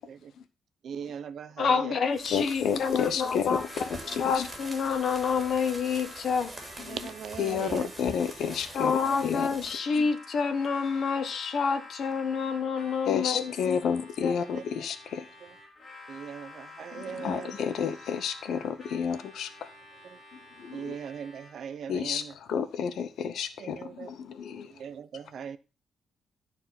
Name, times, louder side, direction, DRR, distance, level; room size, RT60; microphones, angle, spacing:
voice 1, 0.8-2.0 6.8-7.9 9.1-9.2 14.4-14.6 15.4-15.6 16.1-17.7 20.0-20.2 20.7-22.3 23.6-24.1 24.7-25.6, right 7 dB, 60° right, 0.8 m, -40 dB
voice 2, 1.6-3.6 4.2-6.5 7.5-7.6 8.7-13.8 14.2-14.3, left 5 dB, 55° left, 1.3 m, -28 dB
sound 1, 2.1-9.8, right 2 dB, 15° right, 2.8 m, -44 dB
voice 3, 2.3-3.6 3.9-4.4 6.9-7.0 7.4-9.5 10.0-10.1 13.1-15.3 16.9-19.5 20.6-21.0 21.9-24.7, left 7 dB, 75° left, 0.8 m, -31 dB
Harmonica, 3.5-21.8, left 2 dB, 30° left, 4.6 m, -49 dB
12.5 x 4.5 x 5.7 m
cardioid pair, 140°, 0 cm